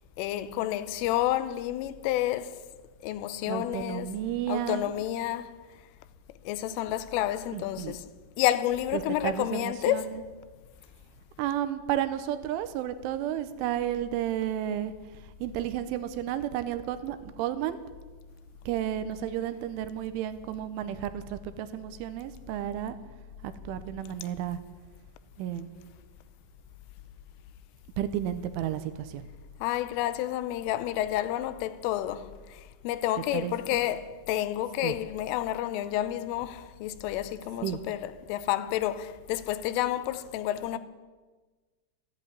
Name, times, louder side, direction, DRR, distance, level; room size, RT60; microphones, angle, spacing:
voice 1, 0.2-2.6 3.0-4.2 4.5-5.6 6.5-8.1 8.4-10.1 29.6-40.8, left 13 dB, 90° left, 3.3 m, -30 dB
voice 2, 3.5-4.9 7.5-8.0 8.9-10.2 11.4-17.8 18.7-23.0 23.4-24.6 25.4-25.8 28.0-29.3 33.3-33.8 34.8-34.9 37.6-37.8, right 11 dB, 85° right, 3.2 m, -32 dB
14.0 x 11.0 x 9.5 m
omnidirectional pair, 5.6 m